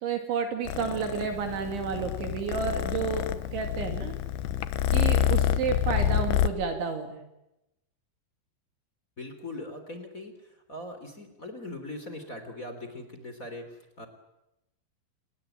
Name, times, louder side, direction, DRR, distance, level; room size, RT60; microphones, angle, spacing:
voice 1, 0.0-4.1 4.9-7.2, right 6 dB, 65° right, 6 dB, 4.5 m, -31 dB
Purr, 0.7-6.5, left 10 dB, 75° left, 3.1 m, -27 dB
voice 2, 9.2-14.1, left 1 dB, 20° left, 7 dB, 3.0 m, -41 dB
28.5 x 21.0 x 9.0 m, 0.91 s
omnidirectional pair, 5.9 m